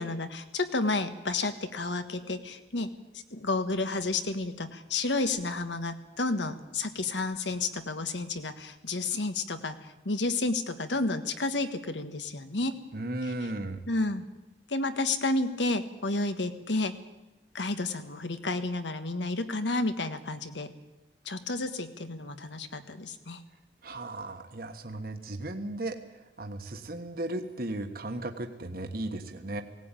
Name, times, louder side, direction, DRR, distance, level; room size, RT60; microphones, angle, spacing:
voice 1, 0.0-2.9 3.3-9.8 10.0-12.8 13.9-14.2 14.7-16.9 17.5-20.7 21.2-23.4, left 2 dB, 85° left, 9 dB, 1.5 m, -31 dB
voice 2, 12.9-13.8 23.8-26.0 26.4-29.6, right 1 dB, 55° right, 5 dB, 1.4 m, -35 dB
18.5 x 17.5 x 9.1 m, 1.1 s
head